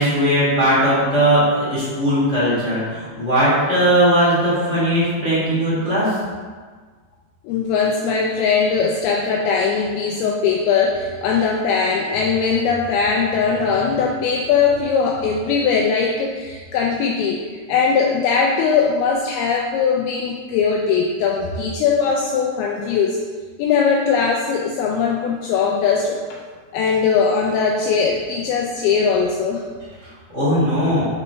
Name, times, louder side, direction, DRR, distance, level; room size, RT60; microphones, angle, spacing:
voice 1, 0.0-6.2 30.3-31.1, equal, 30° left, -9 dB, 1.3 m, -18 dB
voice 2, 7.4-23.2 23.6-26.2 26.7-29.7, left 5 dB, 90° left, 0 dB, 2.2 m, -20 dB
8.5 x 4.0 x 4.4 m, 1.5 s
omnidirectional pair, 5.1 m